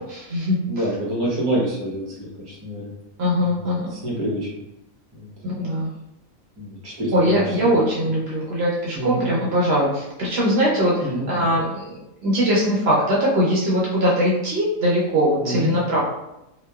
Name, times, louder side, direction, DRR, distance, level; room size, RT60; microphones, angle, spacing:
voice 1, 0.0-0.6 3.2-3.9 5.4-5.9 7.1-16.0, equal, 60° right, -5 dB, 0.8 m, -21 dB
voice 2, 0.7-2.9 3.4-3.6 3.9-4.5 5.1-5.3 6.6-7.7 8.9-9.2 11.0-11.3 15.4-16.0, right 1 dB, 25° right, -5 dB, 0.5 m, -27 dB
2.9 x 2.1 x 2.2 m, 0.88 s
omnidirectional pair, 1.4 m